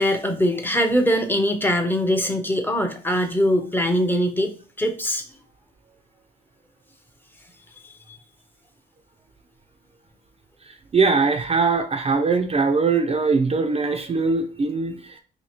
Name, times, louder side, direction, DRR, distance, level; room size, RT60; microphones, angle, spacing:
voice 1, 0.0-4.5 4.8-5.2 8.1-8.2, equal, 10° left, 6 dB, 0.6 m, -22 dB
voice 2, 10.7-15.2, right 4 dB, 30° right, 4 dB, 0.5 m, -21 dB
2.8 x 2.8 x 4.3 m, 0.40 s
cardioid pair, 90°, 20 cm